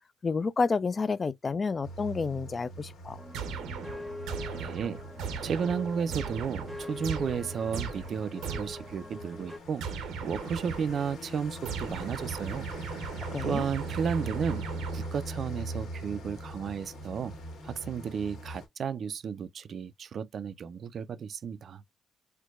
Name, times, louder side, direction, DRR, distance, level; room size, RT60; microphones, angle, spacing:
voice 1, 0.2-3.2 13.2-13.6, left 4 dB, 35° left, 0.3 m, -30 dB
sound 1, 1.8-18.6, right 1 dB, 85° left, 1.6 m, -42 dB
sound 2, 3.2-9.6, left 2 dB, 5° left, 0.8 m, -44 dB
sound 3, 3.3-9.0 9.8-11.1 11.6-15.3, right 6 dB, 85° right, 0.8 m, -38 dB
voice 2, 4.5-5.0 5.4-12.7 13.0-13.1 13.4-14.6 14.9-17.3 17.6-21.8, right 6 dB, 55° right, 0.4 m, -33 dB
4.5 x 2.2 x 2.3 m
cardioid pair, 90°, 0 cm